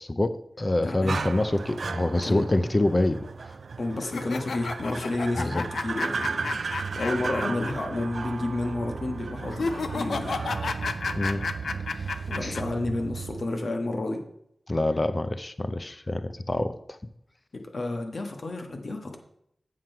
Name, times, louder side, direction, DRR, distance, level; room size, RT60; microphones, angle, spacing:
voice 1, 0.0-3.5 5.4-5.6 11.1-11.5 11.9-12.6 14.7-17.0, left 2 dB, 35° left, 12 dB, 0.5 m, -27 dB
voice 2, 0.8-1.3 2.2-2.5 3.8-6.6 6.9-9.7 9.9-10.4 12.3-14.2 17.5-19.2, left 2 dB, 65° left, 4 dB, 1.4 m, -30 dB
sound 1, 1.1-13.4, right 5 dB, 80° right, 0.3 m, -35 dB
sound 2, 4.0-7.7 8.0-8.1 9.5-12.6, left 4 dB, 85° left, 0.6 m, -32 dB
7.7 x 7.5 x 4.5 m, 0.73 s
wide cardioid pair, 60°, 0 cm